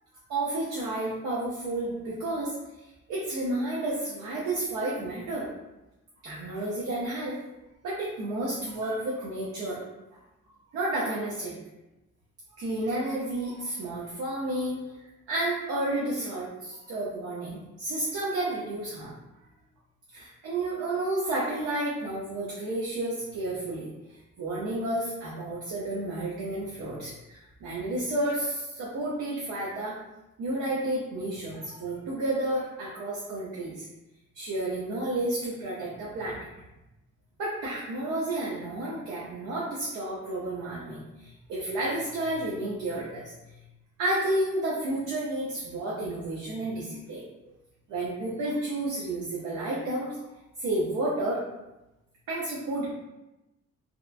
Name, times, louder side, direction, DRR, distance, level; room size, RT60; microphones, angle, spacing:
voice 1, 0.3-2.6 3.1-5.5 6.2-7.4 7.8-9.8 10.7-11.5 12.6-14.8 15.3-19.1 20.1-23.9 24.4-30.0 30.4-33.8 34.3-36.5 37.4-43.3 44.0-47.5 47.9-50.2 50.6-51.4 52.3-52.9, right 1 dB, 80° right, -5 dB, 0.6 m, -31 dB
2.9 x 2.2 x 2.4 m, 0.97 s
cardioid pair, 90°, 30 cm